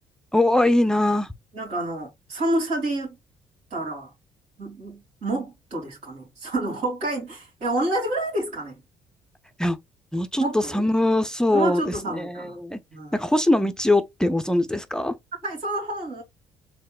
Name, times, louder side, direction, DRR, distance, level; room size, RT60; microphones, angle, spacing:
voice 1, 0.3-1.3 9.6-9.8 10.1-12.8 13.1-15.1, left 1 dB, 5° left, 0.5 m, -22 dB
voice 2, 1.5-3.2 3.7-4.1 4.6-8.8 10.4-10.8 11.5-12.6 12.9-13.2 15.4-16.2, right 1 dB, 75° right, 2.6 m, -28 dB
4.4 x 3.6 x 2.3 m
supercardioid pair, 65°, 11 cm